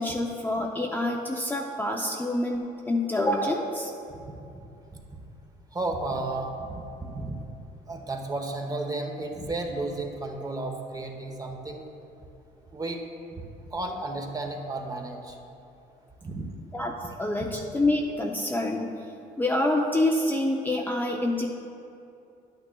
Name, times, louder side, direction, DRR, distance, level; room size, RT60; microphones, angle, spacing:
voice 1, 0.0-3.9 16.7-16.9 17.2-19.0 19.4-21.5, left 1 dB, 10° left, 0 dB, 0.5 m, -27 dB
voice 2, 4.1-4.6 5.7-6.9 7.1-7.4 7.9-11.8 12.7-13.0 13.4-15.4 16.2-16.4 17.4-17.5 20.7-20.9, right 2 dB, 20° right, 3 dB, 0.9 m, -33 dB
11.0 x 8.8 x 2.3 m, 2.7 s
cardioid pair, 110°, 17 cm